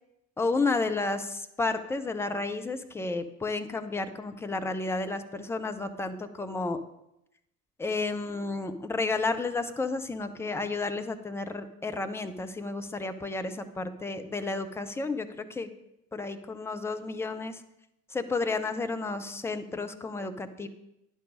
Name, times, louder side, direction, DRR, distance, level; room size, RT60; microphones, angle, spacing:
voice 1, 0.4-6.8 7.8-15.7 16.1-17.6 18.1-20.7, left 3 dB, 5° left, 8 dB, 0.4 m, -32 dB
10.5 x 4.7 x 5.3 m, 0.84 s
figure-of-eight pair, 70°, 47 cm